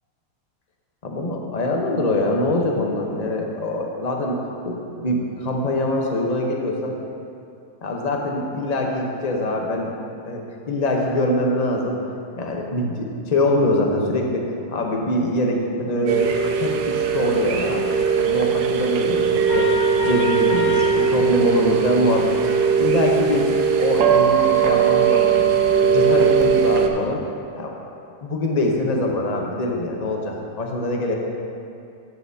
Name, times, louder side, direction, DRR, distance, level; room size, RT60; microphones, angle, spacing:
voice 1, 1.0-6.9 7.8-9.9 10.3-12.0 12.3-16.3 16.6-19.7 20.0-22.5 22.7-23.5 23.8-25.4 25.7-27.2 27.5-27.7 28.2-31.1, left 1 dB, 30° left, 0 dB, 0.8 m, -24 dB
sound 1, 16.1-26.9, right 7 dB, 75° right, 1.2 m, -19 dB
sound 2, 19.5-22.0, right 1 dB, 65° left, 2.1 m, -28 dB
11.5 x 8.5 x 2.8 m, 2.5 s
omnidirectional pair, 1.7 m